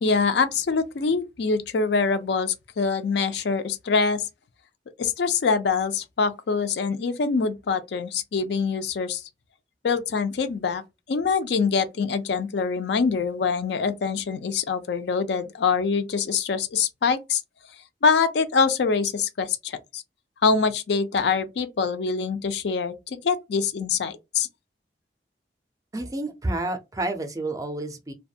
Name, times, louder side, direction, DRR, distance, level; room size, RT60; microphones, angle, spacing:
voice 1, 0.0-4.2 5.0-9.2 9.8-10.8 11.1-17.4 18.0-20.0 20.4-24.5, left 5 dB, 70° left, 0.4 m, -24 dB
voice 2, 25.9-28.1, right 2 dB, 20° right, 0.4 m, -29 dB
2.4 x 2.2 x 2.7 m
head